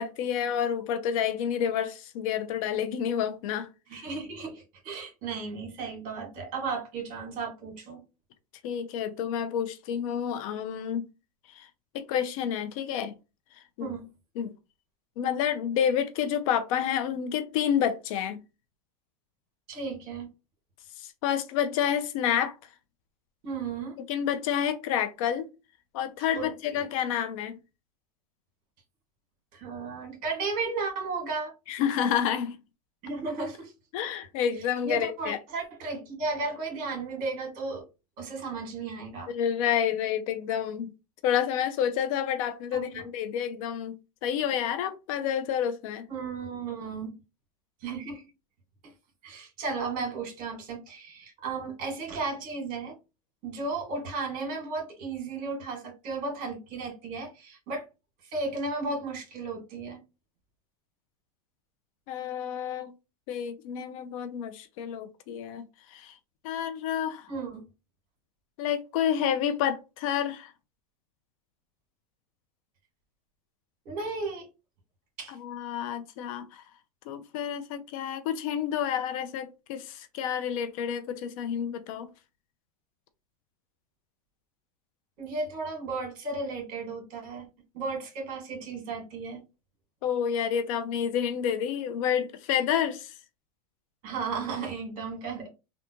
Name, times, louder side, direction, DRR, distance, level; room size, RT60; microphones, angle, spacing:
voice 1, 0.0-3.7 8.6-11.0 11.5-11.7 11.9-13.1 13.8-13.9 14.4-14.5 15.2-18.4 21.0-22.6 24.0-25.5 25.9-27.5 31.7-32.6 33.9-35.4 39.3-40.9 41.2-46.1 62.1-62.9 63.3-65.6 65.9-66.2 66.4-67.3 68.6-70.5 75.3-76.6 77.1-82.1 90.0-93.1, left 9 dB, 65° left, 0.6 m, -29 dB
voice 2, 3.9-8.0 13.8-14.1 19.7-20.3 23.4-24.0 26.3-26.8 29.5-31.5 33.0-33.7 34.8-37.9 38.2-39.3 42.7-43.1 46.1-47.1 47.8-48.3 48.8-48.9 49.2-52.9 53.4-57.9 58.2-60.0 67.3-67.6 73.9-74.5 75.2-75.4 85.2-87.5 87.7-89.4 94.0-95.5, right 4 dB, 50° right, 1.9 m, -34 dB
3.5 x 2.4 x 2.9 m
supercardioid pair, 130°, 19 cm